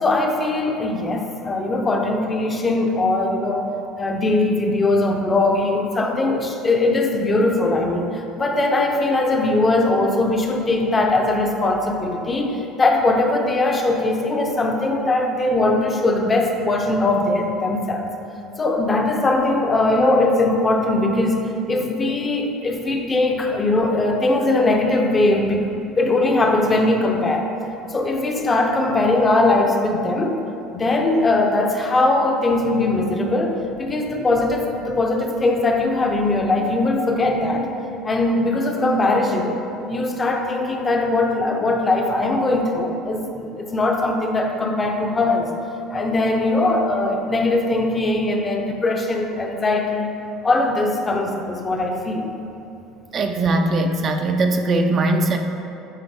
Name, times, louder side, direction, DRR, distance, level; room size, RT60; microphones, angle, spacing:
voice 1, 0.0-3.7 4.0-18.1 18.6-27.5 27.9-30.4 30.7-37.7 38.0-45.5 45.9-50.1 50.4-52.3, left 2 dB, 20° left, 3 dB, 0.6 m, -20 dB
voice 2, 53.1-55.4, right 2 dB, 40° right, 4 dB, 0.4 m, -20 dB
9.0 x 3.8 x 3.5 m, 2.8 s
supercardioid pair, 115°, 0 cm